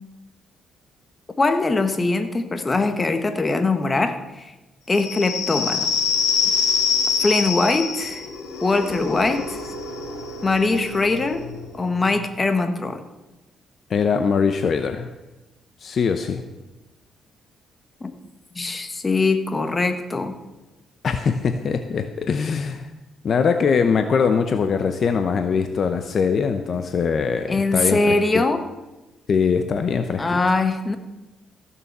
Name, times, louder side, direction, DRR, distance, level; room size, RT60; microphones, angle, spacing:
voice 1, 1.4-4.5 4.9-5.9 7.2-8.2 8.6-9.6 10.4-11.5 11.7-13.0 18.0-18.1 18.5-20.4 27.5-28.6 30.2-31.0, left 3 dB, 25° left, 8 dB, 1.3 m, -22 dB
sound 1, 4.9-12.2, left 5 dB, 75° left, 3.1 m, -25 dB
voice 2, 13.9-15.1 15.8-16.4 21.0-22.9 23.2-28.1 28.3-28.4 29.3-30.4, left 6 dB, 50° left, 8 dB, 0.8 m, -22 dB
15.5 x 6.9 x 6.7 m, 1.1 s
cardioid pair, 90°, 0 cm